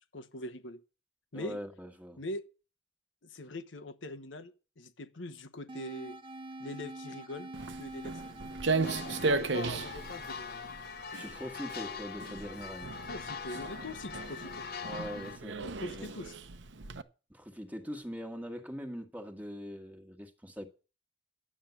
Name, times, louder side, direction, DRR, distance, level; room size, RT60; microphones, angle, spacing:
voice 1, 0.1-0.8 1.3-1.6 2.2-2.4 3.2-6.2 6.6-7.5 7.8-8.4 9.0-10.6 13.0-14.6 15.6-16.3, left 1 dB, 75° left, 1.2 m, -42 dB
voice 2, 1.3-2.2 9.4-9.5 11.1-13.0 14.8-16.3 17.3-20.7, equal, 10° right, 1.6 m, -42 dB
sound 1, 5.7-10.7, right 2 dB, 25° right, 1.0 m, -46 dB
Walk footsteps, 7.5-17.0, right 3 dB, 65° right, 0.9 m, -36 dB
sound 2, 8.8-15.4, left 6 dB, 55° left, 1.0 m, -43 dB
11.0 x 7.6 x 8.2 m
head